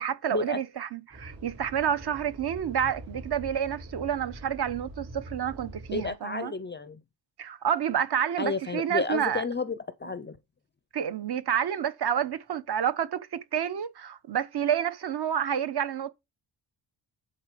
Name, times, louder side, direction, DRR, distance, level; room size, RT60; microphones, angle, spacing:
voice 1, 0.0-6.5 7.4-9.4 10.9-16.1, right 9 dB, 55° right, 0.9 m, -29 dB
sound 1, 1.1-6.1, right 1 dB, 35° right, 5.1 m, -44 dB
voice 2, 5.9-7.0 8.4-9.8 10.0-10.4, left 4 dB, 25° left, 0.4 m, -31 dB
10.0 x 4.2 x 5.0 m
wide cardioid pair, 150°, 46 cm